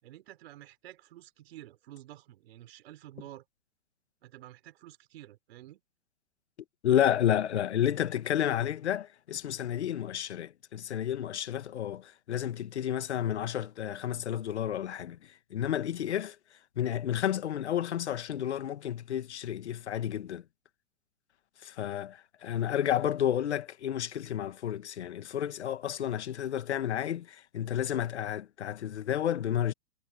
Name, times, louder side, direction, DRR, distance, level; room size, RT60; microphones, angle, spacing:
voice 1, 0.0-3.4 4.2-5.8, right 14 dB, 55° right, 4.4 m, -50 dB
voice 2, 6.8-15.2 15.5-16.4 16.8-20.4 21.6-29.7, left 10 dB, 70° left, 1.9 m, -31 dB
hypercardioid pair, 110°, 35 cm